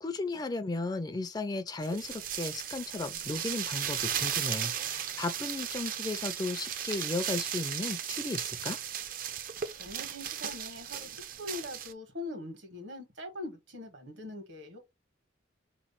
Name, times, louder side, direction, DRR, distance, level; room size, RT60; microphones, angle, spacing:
voice 1, 0.0-8.8, left 2 dB, 20° left, 0.3 m, -35 dB
sound 1, 1.8-11.9, right 9 dB, 45° right, 0.5 m, -36 dB
voice 2, 9.8-14.8, left 2 dB, 75° right, 1.6 m, -42 dB
3.8 x 3.1 x 4.3 m
head